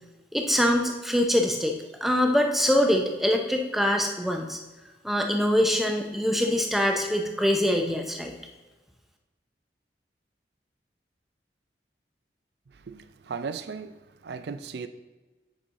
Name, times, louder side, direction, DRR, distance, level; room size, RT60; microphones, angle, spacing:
voice 1, 0.3-4.6 5.0-8.3, equal, ahead, 3 dB, 0.6 m, -24 dB
voice 2, 12.7-14.0 14.2-14.9, right 5 dB, 75° right, 11 dB, 0.4 m, -36 dB
8.2 x 5.5 x 3.7 m, 1.2 s
head